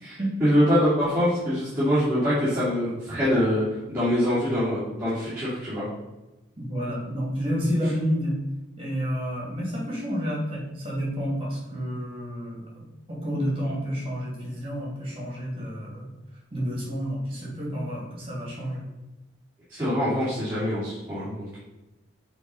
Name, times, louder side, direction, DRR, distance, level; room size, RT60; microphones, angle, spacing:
voice 1, 0.0-5.8 19.7-21.6, equal, 10° right, -12 dB, 2.6 m, -24 dB
voice 2, 6.6-8.4 8.8-12.6 13.1-16.1 16.5-18.8, equal, 30° right, -4 dB, 2.5 m, -29 dB
6.4 x 4.1 x 5.5 m, 1.0 s
head